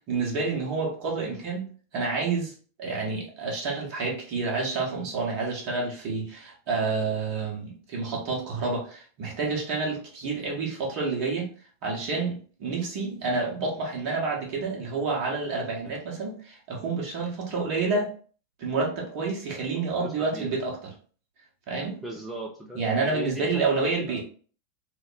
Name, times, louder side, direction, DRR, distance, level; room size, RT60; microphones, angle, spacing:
voice 1, 0.1-2.5 2.8-11.5 11.8-18.1 18.6-20.8 21.7-22.0 22.7-24.2, right 4 dB, 45° right, 1.2 m, -29 dB
voice 2, 19.7-20.5 22.0-22.8 23.1-24.2, right 2 dB, 10° right, 0.5 m, -38 dB
3.4 x 2.1 x 3.2 m
figure-of-eight pair, 90°, 0 cm